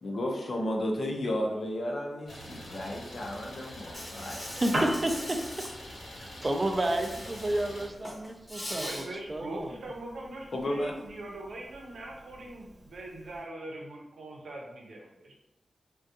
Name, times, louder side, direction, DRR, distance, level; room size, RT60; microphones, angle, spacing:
voice 1, 0.0-4.4 10.5-10.9, left 1 dB, 50° left, 0 dB, 0.5 m, -33 dB
Idling, 2.3-7.9, equal, 80° left, 1.0 m, -45 dB
Insect, 3.9-5.7 6.8-7.6 7.9-9.0, equal, 15° left, 0.7 m, -40 dB
voice 2, 4.4-5.7 6.2-9.8, right 1 dB, 25° right, 5 dB, 0.3 m, -31 dB
Piano, 4.5-13.5, right 1 dB, 50° right, 0.8 m, -41 dB
voice 3, 8.5-15.4, right 1 dB, 90° right, -1 dB, 0.6 m, -42 dB
3.5 x 2.2 x 2.7 m, 0.88 s
wide cardioid pair, 130°, 0 cm